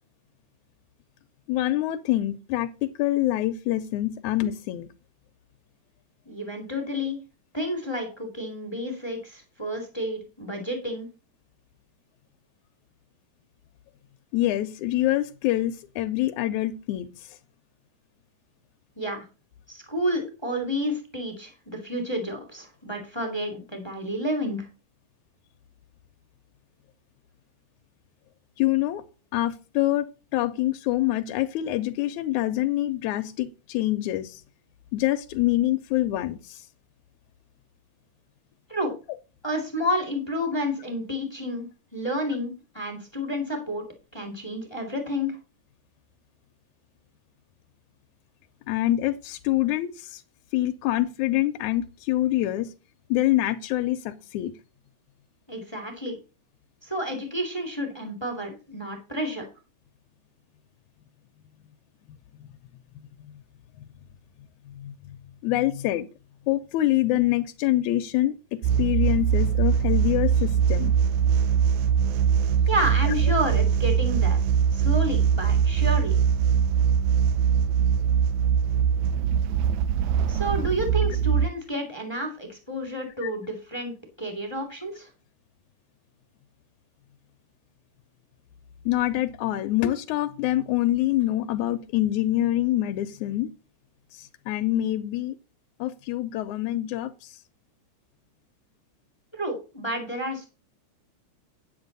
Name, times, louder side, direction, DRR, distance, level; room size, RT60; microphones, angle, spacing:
voice 1, 1.5-4.9 14.3-17.4 28.6-29.0 29.3-30.1 30.3-34.4 34.9-36.7 48.7-50.2 50.5-52.7 53.1-54.5 64.7-65.2 65.4-66.1 66.5-71.0 83.2-83.3 88.9-93.5 94.1-95.4 95.8-97.4, left 14 dB, 85° left, 8 dB, 2.1 m, -25 dB
voice 2, 6.3-7.2 7.5-11.1 19.0-19.2 19.7-24.7 38.7-38.9 39.4-41.7 41.9-43.8 44.1-45.4 55.5-56.2 56.8-59.5 72.7-74.4 74.7-76.2 80.3-85.1 99.3-100.5, equal, 10° left, 3 dB, 2.1 m, -30 dB
sound 1, 68.6-81.5, right 8 dB, 80° right, 2.0 m, -22 dB
9.7 x 8.0 x 4.0 m, 0.32 s
omnidirectional pair, 3.4 m